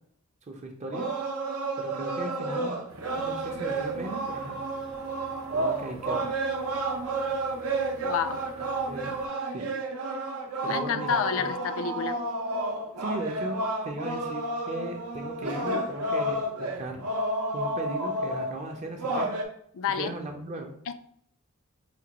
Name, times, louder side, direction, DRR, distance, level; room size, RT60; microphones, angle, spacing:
voice 1, 0.5-1.1 1.8-2.8 3.2-4.6 5.5-6.3 8.9-9.1 9.5-9.7 10.6-11.5 13.0-17.0 17.5-19.3 19.9-20.7, right 2 dB, 30° right, 3 dB, 0.5 m, -37 dB
sound 1, 0.9-19.4, right 2 dB, 90° right, 0.6 m, -31 dB
sound 2, 2.9-9.3, right 1 dB, 65° right, 0.8 m, -49 dB
voice 2, 8.0-8.5 10.7-12.2 19.7-20.1 20.9-21.0, left 7 dB, 65° left, 12 dB, 0.3 m, -29 dB
5.0 x 2.2 x 2.9 m, 0.67 s
head